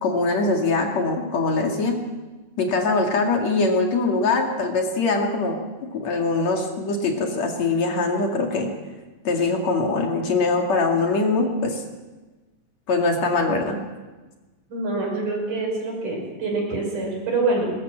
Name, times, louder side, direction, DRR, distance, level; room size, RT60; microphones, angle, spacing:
voice 1, 0.0-2.0 2.6-5.6 5.9-8.7 9.3-11.8 12.9-13.8, left 3 dB, 60° left, 2 dB, 3.4 m, -22 dB
voice 2, 14.7-17.7, right 3 dB, 75° right, 0 dB, 7.6 m, -25 dB
20.5 x 19.5 x 7.5 m, 1.2 s
omnidirectional pair, 3.7 m